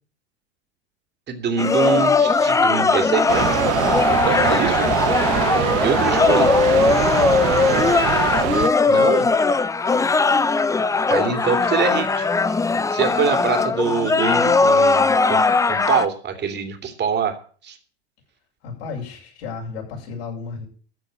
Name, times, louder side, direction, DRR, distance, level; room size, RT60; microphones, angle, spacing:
voice 1, 1.3-3.5 4.3-4.9 5.8-6.5 8.9-9.3 11.1-12.5 12.9-15.4 15.7-17.4 17.6-17.8, right 6 dB, 30° right, 6 dB, 2.9 m, -24 dB
sound 1, 1.6-16.1, left 4 dB, 10° left, 0.6 m, -19 dB
sound 2, 3.3-8.7, right 15 dB, 45° right, 1.1 m, -23 dB
voice 2, 5.5-6.3 18.6-20.7, left 5 dB, 70° left, -2 dB, 7.5 m, -35 dB
14.0 x 6.4 x 8.7 m, 0.43 s
hypercardioid pair, 85°, 33 cm